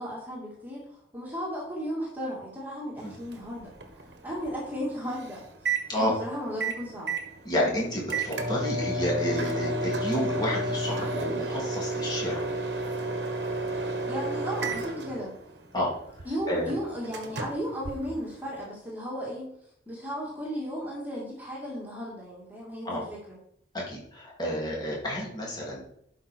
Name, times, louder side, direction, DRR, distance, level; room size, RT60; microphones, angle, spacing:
voice 1, 0.0-5.4 5.9-7.1 14.1-15.3 16.2-19.5 19.9-23.4, equal, 10° right, -5 dB, 2.3 m, -35 dB
Microwave oven, 3.0-18.7, right 2 dB, 75° right, 1.3 m, -33 dB
voice 2, 7.4-12.4 15.7-15.9 16.5-16.7 22.8-23.0 23.7-25.8, equal, 25° left, -4 dB, 3.0 m, -30 dB
11.5 x 5.5 x 4.6 m, 0.72 s
head